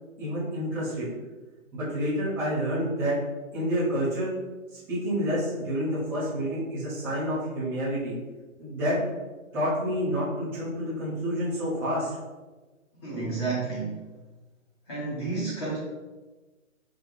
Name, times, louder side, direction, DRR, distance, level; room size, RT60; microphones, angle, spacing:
voice 1, 0.2-1.1 1.7-3.2 3.5-4.3 4.7-8.1 8.6-9.0 9.5-12.1, equal, 5° right, -12 dB, 0.7 m, -28 dB
voice 2, 13.0-14.0 14.9-15.8, right 3 dB, 20° left, -7 dB, 0.9 m, -31 dB
4.9 x 2.2 x 4.0 m, 1.2 s
hypercardioid pair, 150°, 42 cm